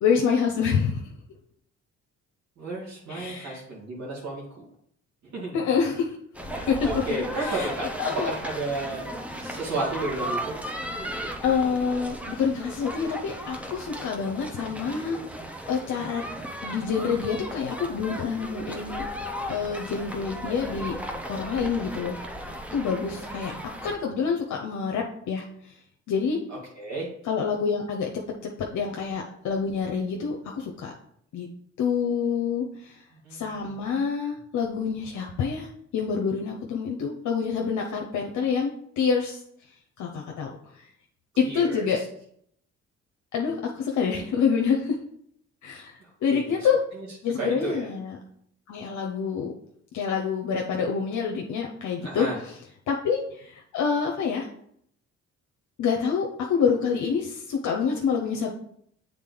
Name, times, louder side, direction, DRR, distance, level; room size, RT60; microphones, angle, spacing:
voice 1, 0.0-1.1 3.1-3.6 5.5-6.2 6.7-6.8 7.1-7.7 8.0-8.3 11.4-15.2 15.7-16.2 16.6-19.0 19.5-20.9 21.3-22.2 22.7-23.5 23.8-25.7 26.1-26.4 27.3-28.1 28.4-30.9 31.3-31.5 31.8-33.0 33.3-39.4 40.0-40.5 41.4-42.0 43.3-45.0 45.6-46.8 47.2-48.2 48.7-49.5 49.9-52.3 52.9-54.5 55.8-58.5, left 6 dB, 70° left, 1 dB, 0.8 m, -27 dB
voice 2, 2.6-4.7 5.2-5.6 6.5-7.9 8.1-9.1 9.4-10.5 23.1-23.5 26.5-27.1 33.2-34.0 41.4-42.1 46.0-47.1 47.3-47.9 52.0-52.4, right 2 dB, 65° right, -5 dB, 2.0 m, -33 dB
sound 1, 6.3-24.0, equal, 5° right, 0.7 m, -36 dB
7.3 x 3.7 x 3.9 m, 0.68 s
cardioid pair, 90°, 30 cm